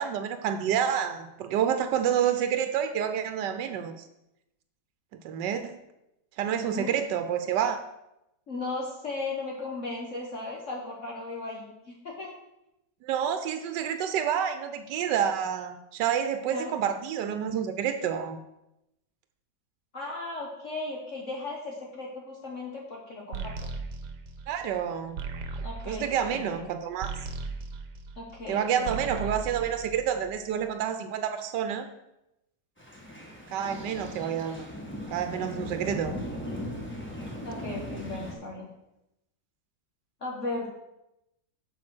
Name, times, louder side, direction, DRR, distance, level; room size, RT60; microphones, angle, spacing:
voice 1, 0.0-3.9 5.2-5.8 6.4-7.8 13.0-18.4 24.5-25.2 25.9-27.1 28.5-31.9 33.5-34.6 35.1-36.1, right 8 dB, 90° right, 9 dB, 1.3 m, -28 dB
voice 2, 6.5-7.0 8.5-12.3 16.5-16.7 19.9-23.5 25.6-26.7 28.2-28.9 37.4-38.7 40.2-40.7, left 2 dB, 50° left, -2 dB, 1.4 m, -36 dB
sound 1, 23.3-28.5 28.8-30.5, right 4 dB, 75° right, 1.3 m, -37 dB
sound 2, 32.8-38.3, left 1 dB, 5° left, 1.5 m, -38 dB
7.4 x 6.3 x 6.1 m, 0.88 s
omnidirectional pair, 1.8 m